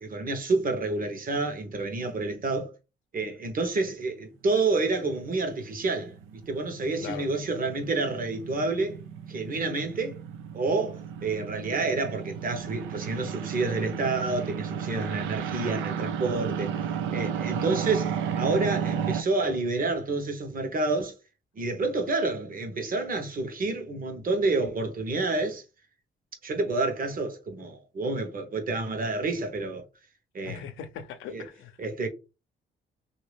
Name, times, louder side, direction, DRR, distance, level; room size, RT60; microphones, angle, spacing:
voice 1, 0.0-2.7 3.1-9.0 9.3-10.2 10.5-21.1 21.6-25.6 26.4-29.8 30.3-30.6 31.3-31.4 31.8-32.1, right 3 dB, 45° right, 1.1 m, -29 dB
sound 1, 4.6-19.2, right 8 dB, 85° right, 0.5 m, -34 dB
voice 2, 30.4-31.8, left 8 dB, 90° left, 0.6 m, -39 dB
3.1 x 2.8 x 3.3 m
cardioid pair, 90°, 20 cm